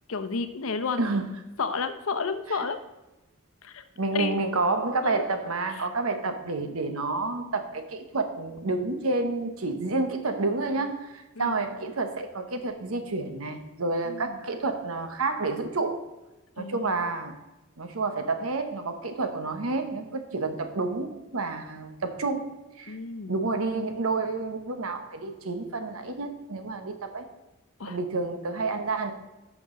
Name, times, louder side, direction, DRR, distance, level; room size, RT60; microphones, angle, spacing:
voice 1, 0.1-1.0 1.6-2.8 3.6-3.8 4.1-4.3 5.0-5.2 11.3-11.5 14.0-14.4 16.6-17.0 22.9-23.4 27.8-28.0, left 4 dB, 75° left, 9 dB, 0.7 m, -31 dB
voice 2, 4.0-16.0 16.6-17.4 17.8-22.5 22.8-23.0 23.3-27.3 27.9-29.1, right 3 dB, 85° right, 7 dB, 1.0 m, -29 dB
11.0 x 6.1 x 3.8 m, 1.0 s
head